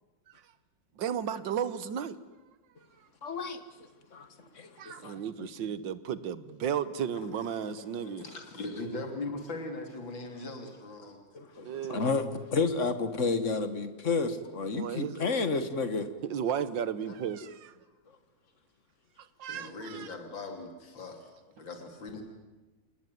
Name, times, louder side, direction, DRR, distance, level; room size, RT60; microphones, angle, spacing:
voice 1, 1.0-2.2 4.8-8.3 11.6-12.1 14.7-15.2 16.2-17.7 19.4-20.1, right 8 dB, 80° right, 1.8 m, -34 dB
voice 2, 3.2-3.6 4.1-4.3 4.5-5.5 11.3-16.1, left 4 dB, 40° left, 1.9 m, -31 dB
voice 3, 7.6-11.2 17.0-17.2 19.5-21.3 21.6-22.2, left 2 dB, 85° left, 3.8 m, -40 dB
28.0 x 19.0 x 9.4 m
omnidirectional pair, 2.0 m